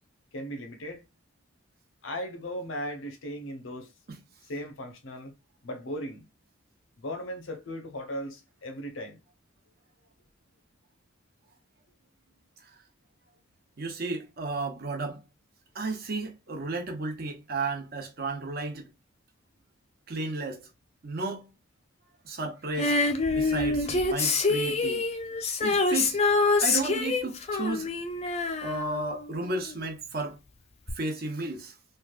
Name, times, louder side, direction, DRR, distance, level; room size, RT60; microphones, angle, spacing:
voice 1, 0.3-1.0 2.0-3.9 4.5-5.3 5.6-6.3 7.0-9.2, equal, 70° left, 0.8 m, -37 dB
voice 2, 13.8-15.2 15.7-18.9 20.1-20.6 21.0-21.5 22.2-23.0 23.3-25.0 25.6-26.2 26.6-27.9 28.6-30.4 31.0-31.7, right 2 dB, 45° right, 0.7 m, -33 dB
Female singing, 22.8-29.7 30.9-31.0, left 3 dB, 30° left, 0.4 m, -26 dB
3.2 x 2.4 x 2.3 m
head